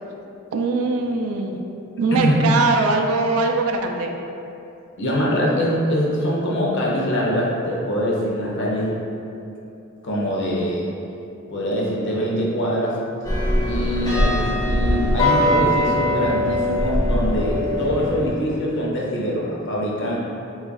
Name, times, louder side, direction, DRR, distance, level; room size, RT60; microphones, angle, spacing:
voice 1, 0.5-1.6 2.0-4.1, right 3 dB, 75° right, 3 dB, 0.3 m, -21 dB
voice 2, 2.1-2.4 5.0-9.0 10.0-10.9 11.5-13.0 13.6-20.2, equal, 60° left, -4 dB, 0.6 m, -23 dB
sound 1, 13.2-18.3, left 1 dB, 20° left, 0.5 m, -21 dB
2.9 x 2.4 x 3.9 m, 2.8 s
head